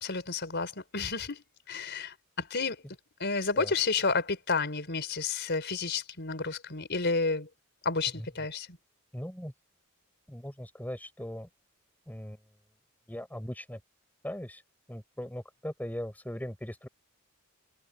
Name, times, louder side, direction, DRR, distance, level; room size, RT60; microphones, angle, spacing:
voice 1, 0.0-2.8 3.2-7.5 7.8-8.8, left 4 dB, 55° left, 4.6 m, -31 dB
voice 2, 9.1-9.5 10.3-11.5 12.1-12.4 13.1-13.8 14.2-14.6 14.9-16.9, equal, 10° left, 5.8 m, -39 dB
head